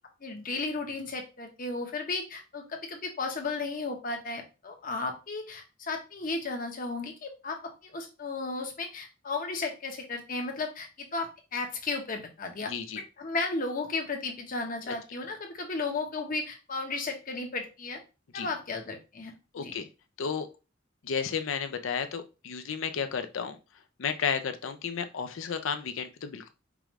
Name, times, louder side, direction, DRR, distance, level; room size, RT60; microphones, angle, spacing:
voice 1, 0.2-12.7 13.2-18.0 18.3-19.7, left 3 dB, 45° left, 4 dB, 0.8 m, -34 dB
voice 2, 12.7-13.0 14.9-15.0 18.3-18.5 19.5-19.9 20.2-20.5 21.0-23.6 24.0-26.5, left 6 dB, 80° left, 9 dB, 0.5 m, -32 dB
4.8 x 2.4 x 3.0 m, 0.30 s
head